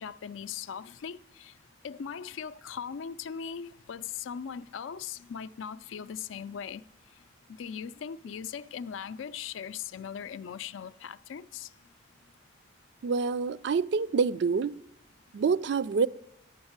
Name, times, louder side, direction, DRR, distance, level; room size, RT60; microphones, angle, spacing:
voice 1, 0.0-1.5 1.8-6.8 7.6-11.7, left 7 dB, 75° left, 0.4 m, -39 dB
voice 2, 13.0-14.8 15.3-16.1, right 5 dB, 60° right, 0.3 m, -27 dB
10.5 x 7.1 x 8.6 m
head